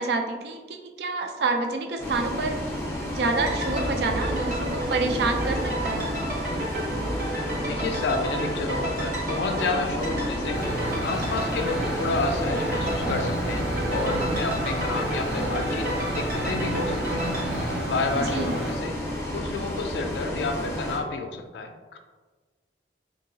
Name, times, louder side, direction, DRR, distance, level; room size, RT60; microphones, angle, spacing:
voice 1, 0.0-2.6 3.1-6.1 18.1-18.6, right 3 dB, 65° right, 4 dB, 0.4 m, -28 dB
Bus, 2.0-21.0, left 1 dB, 15° left, 0.5 m, -32 dB
sound 1, 3.3-17.5, right 1 dB, 45° right, 0.8 m, -31 dB
voice 2, 7.6-10.6 11.0-17.3 17.9-18.9 19.3-22.0, left 3 dB, 75° left, 5 dB, 0.3 m, -30 dB
sound 2, 10.5-18.7, right 1 dB, 85° right, 0.7 m, -33 dB
2.8 x 2.7 x 2.7 m, 1.3 s
head